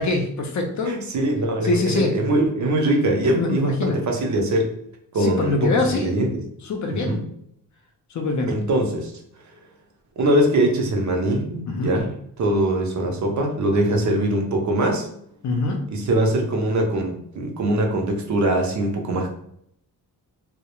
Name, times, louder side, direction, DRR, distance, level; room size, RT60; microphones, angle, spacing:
voice 1, 0.0-0.9 1.6-2.1 3.3-4.0 5.2-6.1 6.6-7.2 8.1-8.5 11.7-11.9 15.4-15.8, left 2 dB, 50° left, 3 dB, 0.5 m, -23 dB
voice 2, 0.8-4.7 5.1-6.3 6.9-7.2 8.5-9.1 10.2-15.1 15.9-19.3, right 1 dB, 50° right, 2 dB, 0.5 m, -22 dB
2.2 x 2.0 x 2.9 m, 0.70 s
cardioid pair, 115°, 39 cm